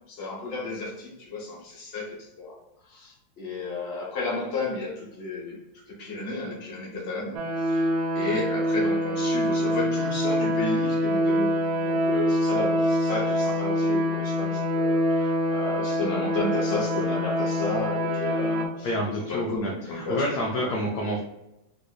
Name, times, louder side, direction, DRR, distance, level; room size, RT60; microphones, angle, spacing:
voice 1, 0.1-2.5 2.8-5.6 5.9-7.9 8.1-20.7, left 2 dB, 40° left, -3 dB, 1.1 m, -32 dB
sound 1, 7.3-18.6, equal, 85° right, 1.4 m, -25 dB
voice 2, 18.8-21.2, equal, 70° left, -2 dB, 1.0 m, -28 dB
3.6 x 2.8 x 2.3 m, 0.90 s
omnidirectional pair, 2.1 m